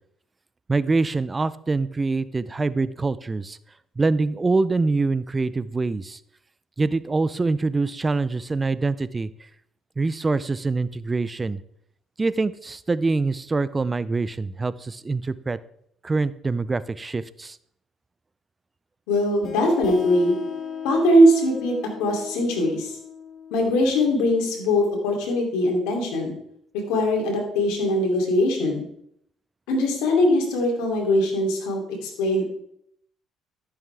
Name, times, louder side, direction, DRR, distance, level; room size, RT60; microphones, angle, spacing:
voice 1, 0.7-3.6 4.0-6.2 6.8-9.3 10.0-11.6 12.2-15.6 16.0-17.6, right 3 dB, 25° right, 17 dB, 0.5 m, -24 dB
voice 2, 19.1-20.3 20.8-23.0 23.5-26.4 26.9-28.9 29.7-32.5, left 1 dB, 85° left, 1 dB, 2.8 m, -21 dB
sound 1, 19.4-24.8, left 7 dB, 60° left, 1.9 m, -37 dB
13.5 x 7.2 x 3.4 m, 0.70 s
supercardioid pair, 75°, 0 cm